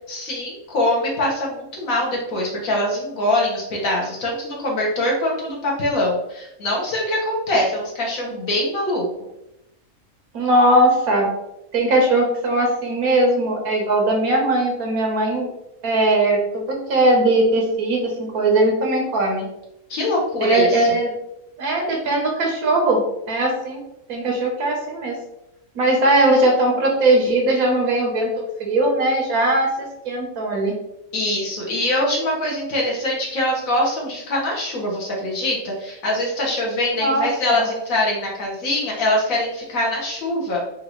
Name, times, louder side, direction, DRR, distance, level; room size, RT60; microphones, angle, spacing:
voice 1, 0.1-9.1 19.9-20.9 31.1-40.6, left 1 dB, 70° left, -2 dB, 1.5 m, -23 dB
voice 2, 10.3-11.3 11.7-15.5 15.8-19.4 20.4-21.1 21.6-23.8 24.1-25.2 25.7-28.3 28.6-30.7 37.0-37.7, right 1 dB, 85° right, 1 dB, 1.4 m, -19 dB
4.6 x 2.5 x 3.0 m, 0.85 s
omnidirectional pair, 1.5 m